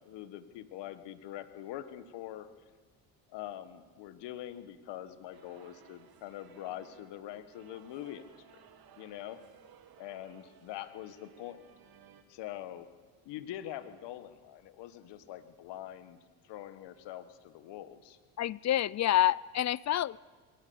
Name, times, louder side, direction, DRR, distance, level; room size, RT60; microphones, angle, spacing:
voice 1, 0.0-2.5 3.3-8.3 9.0-9.4 10.0-11.6 12.3-12.9 13.2-16.2 16.4-18.2, left 12 dB, 70° left, 12 dB, 1.5 m, -44 dB
sound 1, 5.3-12.2, right 8 dB, 55° right, 2.0 m, -59 dB
voice 2, 18.4-20.2, left 12 dB, 40° left, 23 dB, 0.5 m, -28 dB
21.5 x 18.5 x 7.1 m, 1.4 s
hypercardioid pair, 60°, 44 cm